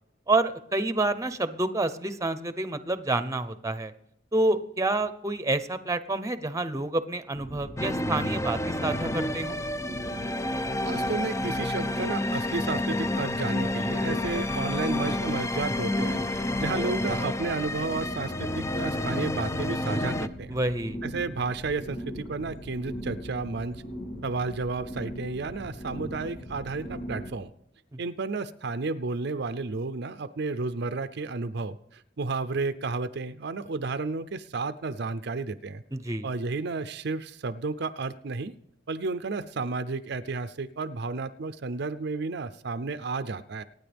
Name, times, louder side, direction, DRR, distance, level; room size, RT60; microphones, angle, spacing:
voice 1, 0.3-3.9 4.3-9.6 20.5-21.0 27.9-28.0 35.9-36.3, right 2 dB, 15° right, 12 dB, 0.8 m, -28 dB
sound 1, 7.3-27.3, equal, 90° left, 2.7 m, -39 dB
sound 2, 7.8-20.3, left 1 dB, 15° left, 0.4 m, -30 dB
sound 3, 10.1-10.2 11.3-11.7 12.6-17.3, left 1 dB, 45° left, 0.9 m, -43 dB
voice 2, 10.8-20.5 21.0-23.8 24.2-27.5 28.0-35.8 36.2-38.6 38.9-43.6, right 3 dB, 60° right, 11 dB, 0.6 m, -32 dB
25.0 x 9.6 x 3.5 m, 0.76 s
head